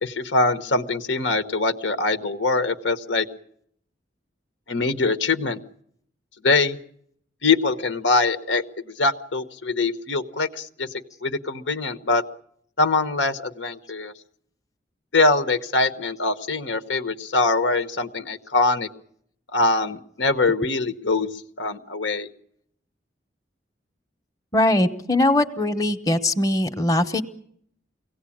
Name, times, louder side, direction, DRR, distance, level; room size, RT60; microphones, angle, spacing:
voice 1, 0.0-3.2 4.7-5.6 6.4-6.8 7.4-8.6 9.0-10.9 11.2-12.2 12.8-14.1 15.1-18.9 19.5-21.3 21.6-22.3, left 3 dB, 85° left, 9 dB, 1.2 m, -23 dB
voice 2, 24.5-27.2, left 1 dB, 20° left, 5 dB, 1.0 m, -21 dB
24.0 x 17.5 x 8.7 m, 0.69 s
head